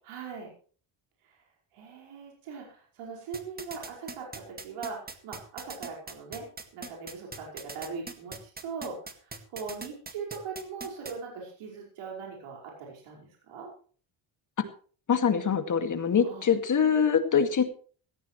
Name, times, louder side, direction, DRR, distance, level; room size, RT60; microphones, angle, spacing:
voice 1, 0.1-0.5 1.2-1.4 1.7-6.5 6.7-13.7 16.2-16.5, right 5 dB, 85° right, -1 dB, 5.3 m, -40 dB
sound 1, 3.3-11.1, right 3 dB, 20° right, 2.0 m, -40 dB
voice 2, 15.1-17.6, left 7 dB, 40° left, 7 dB, 2.2 m, -24 dB
17.0 x 15.5 x 3.2 m, 0.43 s
cardioid pair, 125°, 50 cm